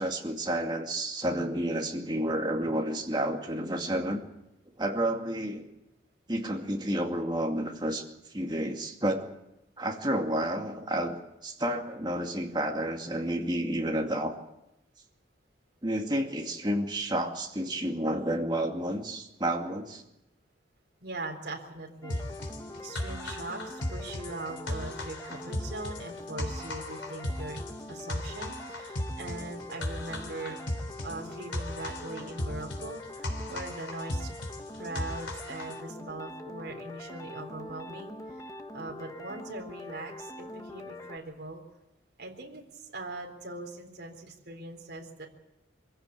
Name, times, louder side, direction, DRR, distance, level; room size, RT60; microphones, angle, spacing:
voice 1, 0.0-4.2 4.8-5.6 6.3-8.0 8.3-9.3 9.8-14.4 15.8-20.0, right 1 dB, 25° right, 2 dB, 2.4 m, -30 dB
voice 2, 21.0-22.3 22.8-27.6 27.9-30.7 31.0-34.3 34.7-38.4 38.7-41.6 42.2-45.3, right 2 dB, 60° right, 0 dB, 4.0 m, -41 dB
sound 1, 22.0-41.2, left 1 dB, 20° left, 1.3 m, -43 dB
sound 2, 22.1-35.8, left 1 dB, 75° left, 3.5 m, -37 dB
24.5 x 15.5 x 8.7 m, 0.89 s
head